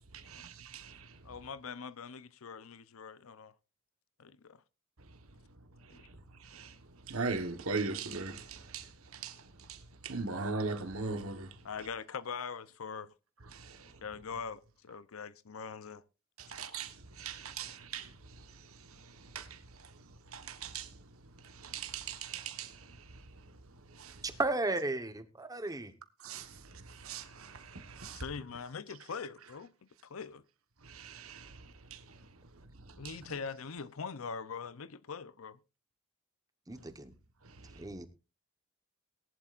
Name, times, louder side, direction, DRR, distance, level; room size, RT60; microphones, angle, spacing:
voice 1, 0.1-1.2 5.0-5.2 5.8-11.7 13.5-14.0 16.4-24.3 26.2-28.2 30.8-33.3 37.4-37.9, right 4 dB, 90° right, 1.3 m, -41 dB
voice 2, 1.2-3.5 4.2-4.6 5.9-6.1 11.6-13.1 14.0-16.0 28.1-29.7 30.0-30.4 33.0-35.6, left 5 dB, 80° left, 0.7 m, -42 dB
voice 3, 24.4-25.9 36.7-37.1 37.7-38.1, right 2 dB, 15° right, 1.1 m, -34 dB
18.5 x 11.0 x 2.5 m
head